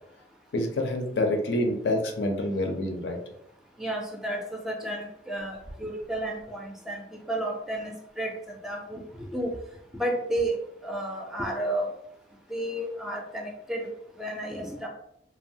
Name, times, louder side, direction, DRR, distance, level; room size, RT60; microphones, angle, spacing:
voice 1, 0.5-3.2, left 1 dB, 75° left, 3 dB, 0.5 m, -27 dB
voice 2, 3.8-7.0 7.3-8.3 8.6-9.5 9.9-11.9 12.5-13.9 14.2-14.9, right 1 dB, ahead, 0 dB, 0.3 m, -32 dB
3.0 x 2.0 x 2.6 m, 0.75 s
head